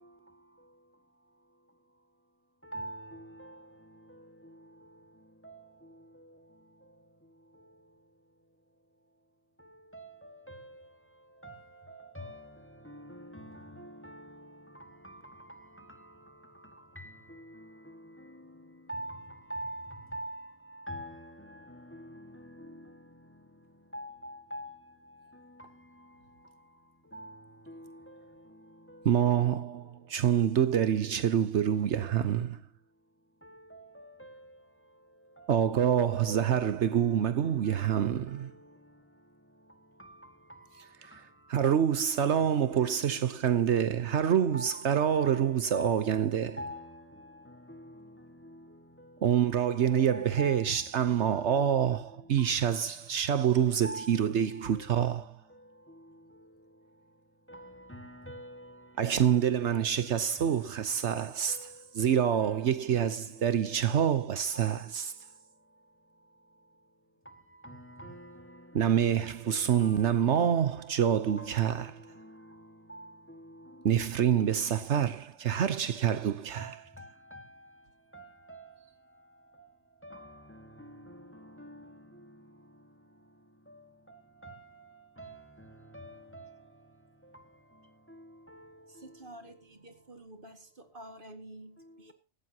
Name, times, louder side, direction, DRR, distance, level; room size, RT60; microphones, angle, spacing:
voice 1, 19.5-19.8 20.1-20.4 20.9-21.1 23.9-24.7 27.1-27.2 44.5-44.8 45.1-45.3 45.7-45.9 46.6-46.8 50.4-50.6 53.8-54.0 58.3-58.4 64.5-64.6 68.0-68.1 76.6-76.7 77.3-77.4 84.4-84.5 85.2-85.3 85.9-86.0, right 1 dB, 10° left, 1.6 m, -38 dB
voice 2, 29.0-32.6 35.5-38.5 41.0-41.2 41.5-46.6 49.2-55.4 59.0-65.1 68.7-72.0 73.8-76.8, right 9 dB, 75° right, 1.1 m, -27 dB
voice 3, 88.9-92.1, right 1 dB, 45° right, 2.2 m, -49 dB
17.0 x 14.5 x 2.9 m
omnidirectional pair, 1.2 m